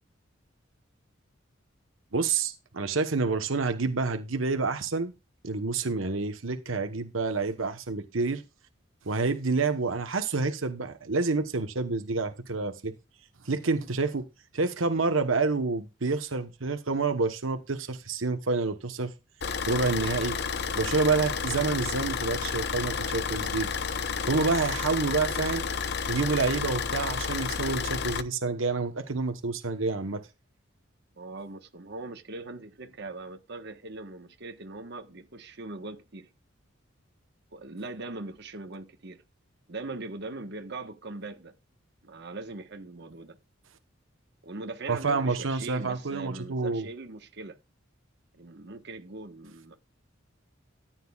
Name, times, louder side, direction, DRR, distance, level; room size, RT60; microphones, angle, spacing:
voice 1, 2.1-5.1 5.4-8.4 9.0-12.9 13.4-14.2 14.5-19.1 19.6-20.4 20.8-23.7 24.3-25.6 26.1-30.2 44.9-46.9, right 4 dB, 85° right, 1.1 m, -28 dB
Car / Idling, 19.4-28.2, left 6 dB, 55° left, 0.8 m, -31 dB
voice 2, 31.2-36.3 37.5-39.2 39.7-41.6 42.0-43.4 44.4-47.6 48.3-49.7, right 2 dB, 60° right, 1.3 m, -40 dB
13.5 x 9.2 x 2.4 m
head